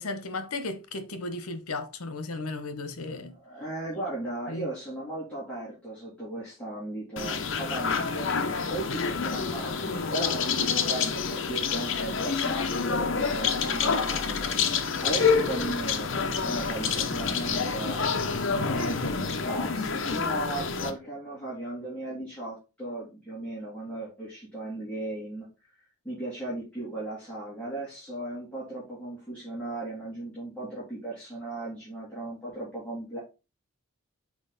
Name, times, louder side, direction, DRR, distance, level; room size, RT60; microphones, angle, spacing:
voice 1, 0.0-3.3 4.5-4.7, left 2 dB, 85° left, 0.9 m, -35 dB
voice 2, 3.3-14.6 15.0-18.0 18.4-25.5 26.0-33.2, right 2 dB, 5° left, 2.7 m, -36 dB
sound 1, 7.2-20.9, left 5 dB, 60° left, 0.8 m, -28 dB
6.3 x 4.3 x 3.9 m
head